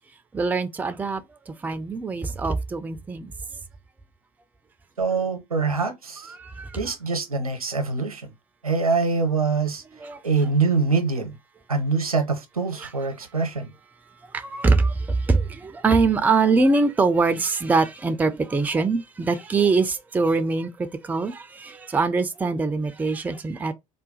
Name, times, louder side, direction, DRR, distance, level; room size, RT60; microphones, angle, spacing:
voice 1, 0.3-3.3 6.2-6.8 10.0-10.2 12.8-12.9 14.3-23.7, right 4 dB, 10° right, 0.4 m, -23 dB
voice 2, 5.0-6.3 6.8-8.3 8.6-9.8 10.2-11.3 11.7-13.7, right 4 dB, 85° right, 0.7 m, -24 dB
3.7 x 2.2 x 3.9 m
figure-of-eight pair, 65°, 18 cm